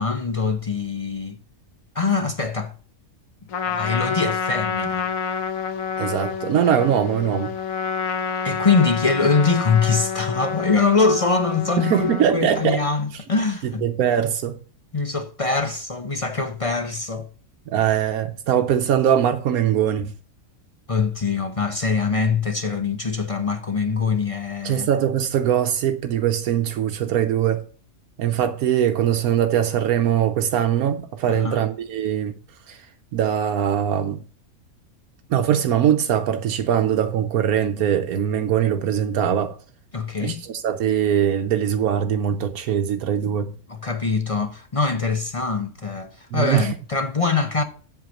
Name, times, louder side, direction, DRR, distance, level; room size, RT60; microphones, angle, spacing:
voice 1, 0.0-1.4 1.9-2.7 3.7-5.1 8.4-13.9 14.9-17.3 20.9-24.9 31.3-31.6 39.9-40.4 43.7-47.6, left 4 dB, 35° left, 0.5 m, -23 dB
Trumpet, 3.5-12.3, left 6 dB, 70° left, 1.3 m, -28 dB
voice 2, 6.0-7.5 11.8-12.8 13.6-14.5 17.7-20.1 24.6-27.6 28.2-32.3 32.7-32.8 33.1-34.2 35.3-39.6 40.2-43.5 46.3-46.7, right 9 dB, 85° right, 1.2 m, -21 dB
7.9 x 5.7 x 7.0 m
omnidirectional pair, 1.5 m